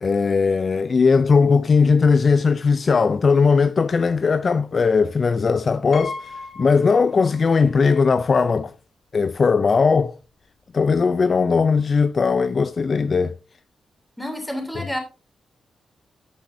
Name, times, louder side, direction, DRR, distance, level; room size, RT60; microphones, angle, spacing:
voice 1, 0.0-8.7 9.1-10.2 10.7-13.3 14.7-14.9, left 5 dB, 35° left, 0.3 m, -18 dB
Piano, 5.9-7.7 8.1-8.2 9.3-9.4 9.7-10.0, left 4 dB, 55° left, 1.3 m, -36 dB
voice 2, 14.2-15.0, equal, 5° left, 3.0 m, -29 dB
10.5 x 9.3 x 2.6 m
wide cardioid pair, 145°, 0 cm